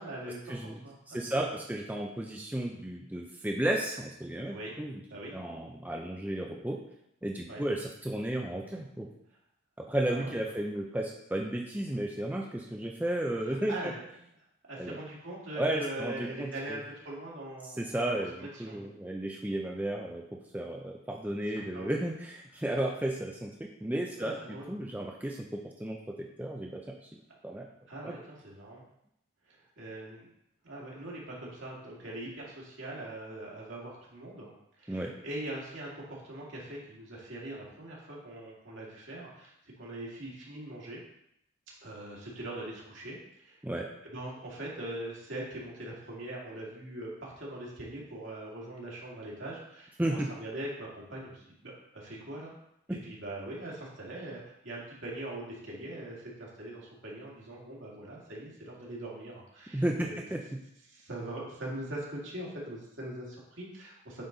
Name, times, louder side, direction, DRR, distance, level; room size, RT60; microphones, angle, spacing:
voice 1, 0.0-0.4 0.8-0.9 1.3-1.5 4.5-4.7 5.1-5.4 7.5-7.6 10.1-10.3 13.4-14.0 14.7-17.9 18.4-18.9 21.7-22.0 24.2-24.7 27.9-28.9 29.5-30.3 30.6-34.5 34.8-41.0 41.8-43.6 44.0-52.5 52.9-60.2 60.9-64.3, right 1 dB, 65° right, -4 dB, 2.2 m, -42 dB
voice 2, 1.1-5.0 5.3-6.8 7.2-9.1 9.8-13.9 14.8-15.0 15.6-16.8 17.6-20.2 20.5-27.7 28.0-28.1 34.9-35.1 43.6-43.9 50.0-50.3 59.7-60.4, right 1 dB, 10° right, 0 dB, 0.4 m, -33 dB
8.7 x 4.0 x 3.9 m, 0.79 s
head